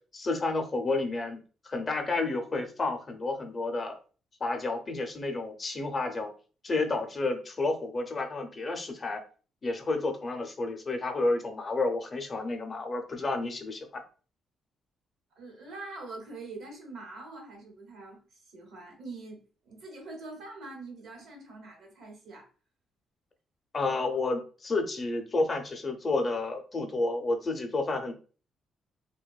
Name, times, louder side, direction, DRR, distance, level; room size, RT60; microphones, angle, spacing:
voice 1, 0.1-1.4 1.6-4.0 4.4-6.3 6.6-9.2 9.6-14.0 23.7-28.1, left 3 dB, 35° left, 5 dB, 0.5 m, -30 dB
voice 2, 15.3-22.5, right 3 dB, 75° right, 1 dB, 1.0 m, -44 dB
2.5 x 2.2 x 2.3 m, 0.38 s
cardioid pair, 90°, 0 cm